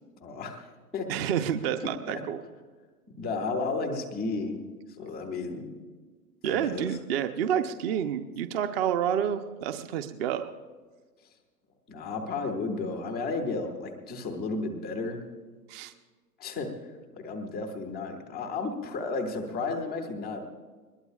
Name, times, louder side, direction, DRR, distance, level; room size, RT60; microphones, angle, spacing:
voice 1, 0.2-0.7 0.9-1.1 3.2-4.6 5.0-5.8 6.4-7.0 11.9-15.2 16.4-16.7 17.1-20.4, left 3 dB, ahead, -12 dB, 0.3 m, -33 dB
voice 2, 1.1-2.4 6.4-10.5 15.7-15.9, right 9 dB, 40° right, 9 dB, 0.8 m, -29 dB
21.5 x 20.5 x 2.4 m, 1.4 s
hypercardioid pair, 120°, 48 cm